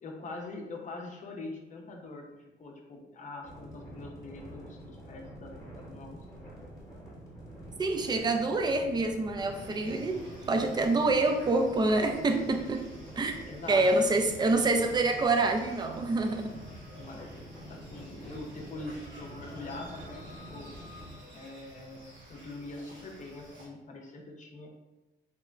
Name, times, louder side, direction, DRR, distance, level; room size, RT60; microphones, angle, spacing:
voice 1, 0.0-2.2 2.6-6.2 13.5-13.9 16.9-17.4 17.7-20.2 20.5-20.7 21.3-24.7, left 2 dB, 40° left, 0 dB, 0.6 m, -43 dB
sound 1, 3.4-21.2, right 1 dB, 15° left, 0.9 m, -47 dB
voice 2, 7.8-10.2 10.5-12.9 13.2-13.4 13.7-16.5, right 2 dB, 20° right, 5 dB, 0.3 m, -26 dB
sound 2, 9.5-23.7, equal, 70° right, 1.0 m, -52 dB
2.9 x 2.1 x 2.3 m, 1.0 s
cardioid pair, 90°, 20 cm